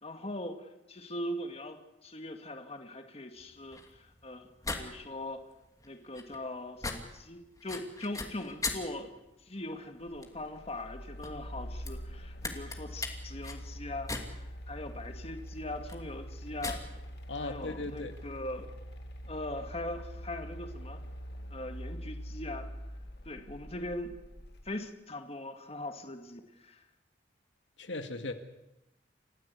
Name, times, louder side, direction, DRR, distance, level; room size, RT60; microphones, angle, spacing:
voice 1, 0.0-4.5 4.7-5.4 5.8-9.1 9.4-16.8 17.4-18.7 19.2-21.0 21.5-22.7 23.3-24.1 24.7-26.8, left 1 dB, 35° left, 6 dB, 2.1 m, -41 dB
sound 1, 3.4-18.6, left 3 dB, 20° left, 2.6 m, -42 dB
sound 2, 10.0-24.7, equal, 65° left, 2.2 m, -44 dB
voice 2, 17.3-18.2 27.8-28.3, left 2 dB, 90° left, 6 dB, 2.1 m, -37 dB
29.5 x 15.0 x 8.4 m, 0.93 s
head